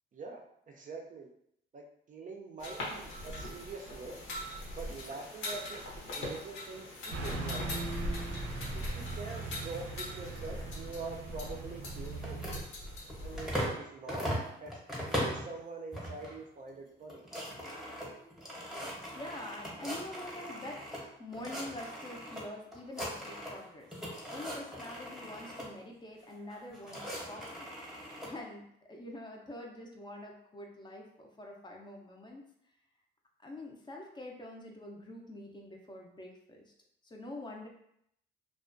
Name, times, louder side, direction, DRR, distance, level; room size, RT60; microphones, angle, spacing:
voice 1, 0.1-1.3 1.7-4.2 4.7-5.8 6.1-7.8 8.7-12.6 13.2-14.3 14.6-14.8 15.1-17.3, right 3 dB, 40° right, 1 dB, 0.4 m, -45 dB
sound 1, 2.6-13.7, left 1 dB, 90° left, 0.8 m, -43 dB
Car passing by / Truck, 7.1-12.6, right 2 dB, 80° right, 0.6 m, -38 dB
sound 2, 12.1-13.8 14.1-15.5 15.9-16.4 16.7-16.8 17.0-21.0 21.3-22.4 22.7-23.6 23.9-25.7 26.5-28.3, equal, ahead, 0.8 m, -39 dB
voice 2, 19.1-23.9 24.3-27.0 27.3-27.7 28.2-32.4 33.4-36.6 37.0-37.7, left 1 dB, 20° left, 0 dB, 0.4 m, -45 dB
2.4 x 2.1 x 2.4 m, 0.73 s
cardioid pair, 90°, 20 cm